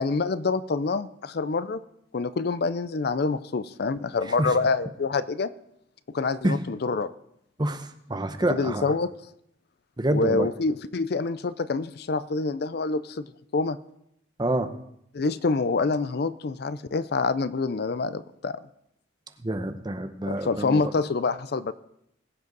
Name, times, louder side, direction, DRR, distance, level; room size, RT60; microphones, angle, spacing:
voice 1, 0.0-1.8 2.1-5.5 6.1-7.1 8.5-9.1 10.1-13.2 13.5-13.8 15.1-18.6 20.3-21.7, left 4 dB, 55° left, 15 dB, 0.4 m, -26 dB
voice 2, 7.6-8.9 10.0-10.5 14.4-14.7 19.4-20.8, right 1 dB, 20° right, 9 dB, 0.8 m, -27 dB
21.0 x 7.9 x 4.0 m, 0.76 s
head